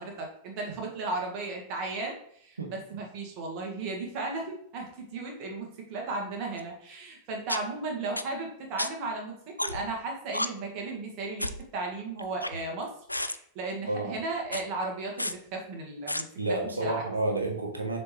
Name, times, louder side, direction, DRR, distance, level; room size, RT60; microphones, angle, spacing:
voice 1, 0.0-9.3 9.6-11.5 11.7-16.6 16.8-17.0, right 3 dB, 40° right, 0 dB, 1.9 m, -35 dB
voice 2, 2.6-3.0 13.9-14.1 16.4-18.0, right 2 dB, 75° right, 2 dB, 1.4 m, -30 dB
sound 1, 6.6-6.7 7.5-7.6 8.2-8.3 8.8-8.9 9.6-9.9 10.3-10.5 11.4-11.6 12.2-12.8 13.1-13.4 14.4-14.6 15.2-15.3 16.1-16.2, left 1 dB, 85° left, 0.3 m, -31 dB
6.6 x 4.4 x 3.5 m, 0.66 s
figure-of-eight pair, 90°, 0 cm